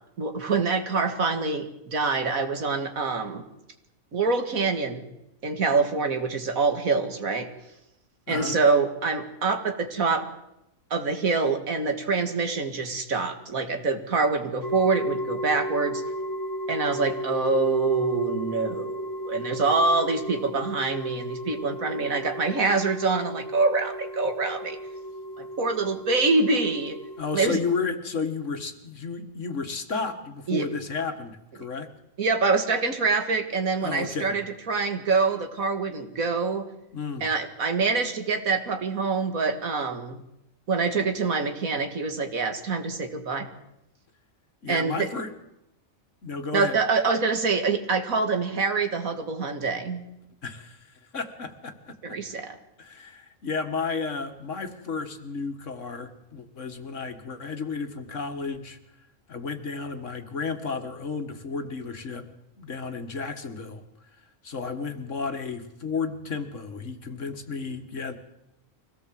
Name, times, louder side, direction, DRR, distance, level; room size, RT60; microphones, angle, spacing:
voice 1, 0.2-3.4 4.1-5.0 5.4-7.5 8.3-10.3 10.9-16.0 16.7-24.8 25.4-27.0 27.3-27.6 30.5-30.7 32.2-36.7 37.2-40.2 40.7-43.5 44.7-45.1 46.5-50.1 52.0-52.6, right 4 dB, 80° right, 6 dB, 2.4 m, -25 dB
sound 1, 14.6-27.2, equal, 15° left, 2.2 m, -34 dB
voice 2, 27.2-31.9 33.8-34.3 36.9-37.2 44.6-45.3 46.2-46.8 50.4-52.2 52.8-58.8 59.3-62.3 62.6-63.8 64.4-68.1, left 4 dB, 60° left, 7 dB, 2.0 m, -32 dB
24.0 x 17.5 x 7.7 m, 0.86 s
omnidirectional pair, 1.4 m